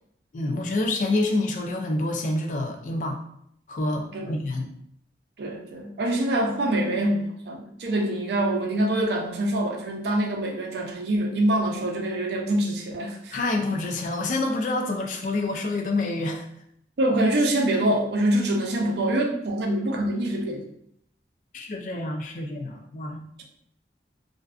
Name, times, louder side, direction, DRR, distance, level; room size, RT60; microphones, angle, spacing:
voice 1, 0.3-3.2 3.7-4.7 13.3-16.5 21.5-23.3, left 2 dB, 45° left, 3 dB, 0.3 m, -27 dB
voice 2, 5.4-13.4 17.0-20.6, right 1 dB, 70° right, 2 dB, 0.4 m, -25 dB
2.5 x 2.3 x 2.3 m, 0.70 s
head